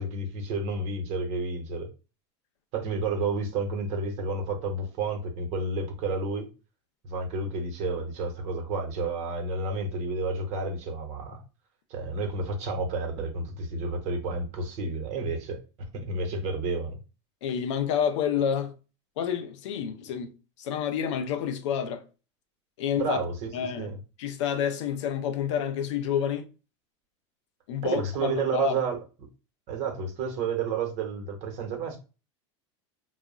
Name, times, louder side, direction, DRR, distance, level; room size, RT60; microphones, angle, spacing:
voice 1, 0.0-1.9 2.7-6.5 7.0-11.4 11.9-17.0 22.9-24.0 27.8-29.0 29.7-32.0, right 3 dB, 50° right, 0.9 m, -31 dB
voice 2, 17.4-18.7 19.2-20.3 20.6-22.0 22.8-23.2 23.5-23.9 24.2-26.5 27.7-28.8, left 8 dB, 80° left, 0.5 m, -29 dB
2.3 x 2.0 x 3.6 m
supercardioid pair, 125°, 15 cm